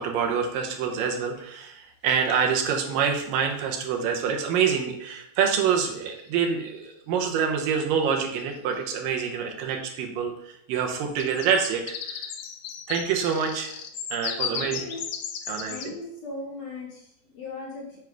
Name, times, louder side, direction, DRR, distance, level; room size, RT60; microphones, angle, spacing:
voice 1, 0.0-12.3 12.9-13.8 14.1-14.9 15.5-16.0, right 7 dB, 75° right, 2 dB, 2.5 m, -26 dB
sound 1, 1.4-1.5 5.8-6.4 8.0-8.1 8.4-8.7 11.0-15.9, left 7 dB, 75° left, 1.7 m, -35 dB
voice 2, 14.5-15.0 15.7-18.0, left 3 dB, 60° left, -3 dB, 2.1 m, -38 dB
7.2 x 4.7 x 4.6 m, 0.76 s
omnidirectional pair, 4.2 m